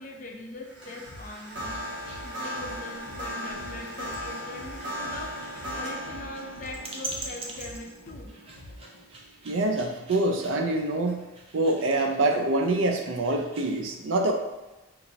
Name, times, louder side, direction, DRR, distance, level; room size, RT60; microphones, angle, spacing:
voice 1, 0.0-5.3 5.7-8.3, left 2 dB, 40° left, 2 dB, 0.5 m, -42 dB
sound 1, 0.6-10.0, equal, 55° right, 1.1 m, -38 dB
sound 2, 1.1-1.2 1.6-5.2 5.6-9.0, left 1 dB, 80° left, 0.8 m, -46 dB
sound 3, 1.2-13.8, right 2 dB, 30° right, 0.5 m, -44 dB
voice 2, 9.4-11.3 11.5-14.3, right 2 dB, 85° right, 4 dB, 0.5 m, -25 dB
4.6 x 2.5 x 2.7 m, 1.1 s
head